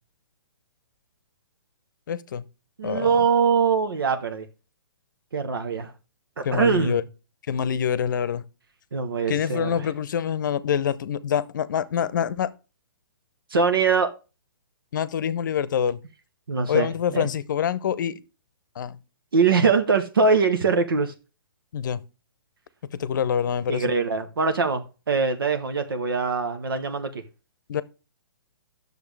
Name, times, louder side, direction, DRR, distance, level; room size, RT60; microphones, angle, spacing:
voice 1, 2.1-2.4 2.8-3.1 6.4-7.0 7.5-8.4 9.3-12.5 14.9-16.0 16.7-18.2 18.8-19.0 21.7-22.0 23.0-23.8 27.7-27.8, left 8 dB, 60° left, 0.7 m, -26 dB
voice 2, 2.8-4.5 5.3-5.9 6.5-7.0 8.9-9.9 13.5-14.1 16.5-17.3 19.3-21.1 23.7-27.1, right 5 dB, 75° right, 1.1 m, -22 dB
9.9 x 6.8 x 3.3 m
hypercardioid pair, 130°, 12 cm